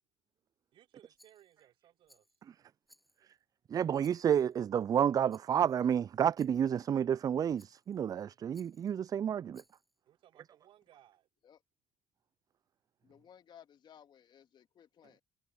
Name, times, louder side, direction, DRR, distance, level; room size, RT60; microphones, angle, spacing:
voice 1, 0.7-2.4 10.1-11.3, right 12 dB, 60° right, 4.2 m, -63 dB
Rattle, 1.2-1.7 2.1-2.4 2.9-3.4 4.0-4.6 5.3-5.6 6.4-6.8 7.6-8.0 8.5-9.0 9.5-10.0, equal, ahead, 8.0 m, -66 dB
voice 2, 3.7-9.6, right 8 dB, 35° right, 0.4 m, -30 dB
voice 3, 13.0-15.2, left 9 dB, 50° left, 3.1 m, -59 dB
hypercardioid pair, 60°, 10 cm